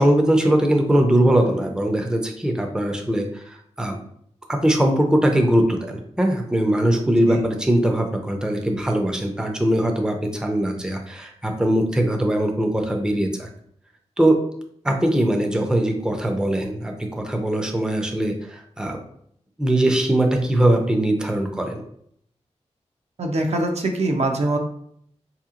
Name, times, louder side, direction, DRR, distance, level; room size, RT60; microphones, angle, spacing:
voice 1, 0.0-4.0 4.5-13.5 14.2-14.4 14.8-19.0 19.6-21.8, right 1 dB, 5° right, 3 dB, 0.5 m, -21 dB
voice 2, 7.1-7.5 23.2-24.6, right 2 dB, 65° right, 3 dB, 0.5 m, -23 dB
4.3 x 2.9 x 2.4 m, 0.68 s
wide cardioid pair, 95°, 12 cm